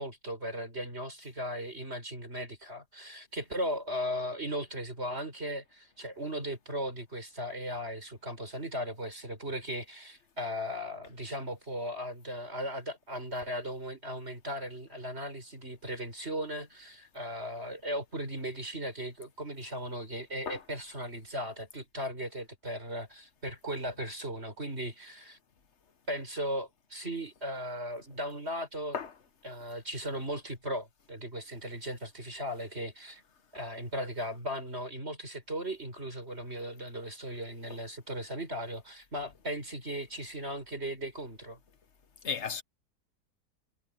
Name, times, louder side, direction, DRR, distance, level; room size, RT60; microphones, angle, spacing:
voice 1, 0.0-25.4 26.1-29.0 29.4-33.2 33.5-41.6, equal, 35° right, 6.5 m, -37 dB
voice 2, 42.2-42.6, left 6 dB, 45° left, 1.5 m, -34 dB
omnidirectional pair, 1.8 m